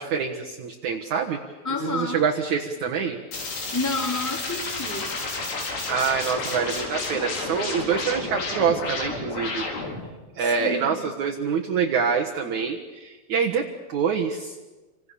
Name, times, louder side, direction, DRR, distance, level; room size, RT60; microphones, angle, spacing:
voice 1, 0.0-1.4 1.8-3.2 5.9-9.7 10.3-14.6, right 6 dB, 55° right, 1 dB, 2.4 m, -26 dB
voice 2, 1.6-2.2 3.7-5.2 10.4-11.1, left 3 dB, 5° left, 3 dB, 2.4 m, -30 dB
sound 1, 3.3-10.1, left 3 dB, 75° left, 6.3 m, -31 dB
29.0 x 26.0 x 7.0 m, 1.2 s
omnidirectional pair, 4.8 m